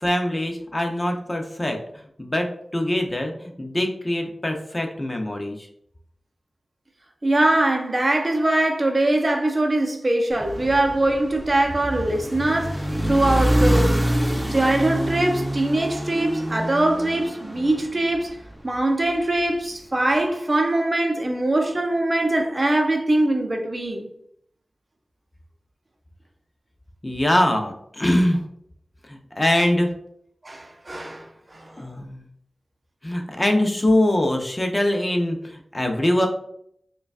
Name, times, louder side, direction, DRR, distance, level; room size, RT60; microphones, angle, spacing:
voice 1, 0.0-1.8 2.2-5.5 27.0-28.4 29.4-29.9 31.8-32.2 33.0-36.3, left 1 dB, 30° left, 0.6 m, -23 dB
voice 2, 7.2-14.0 14.5-18.4 18.6-24.1 30.4-31.8, right 1 dB, 45° right, 0.6 m, -22 dB
sound 1, 10.3-18.7, right 1 dB, 5° right, 0.6 m, -25 dB
4.9 x 2.3 x 2.4 m
cardioid pair, 45°, 0 cm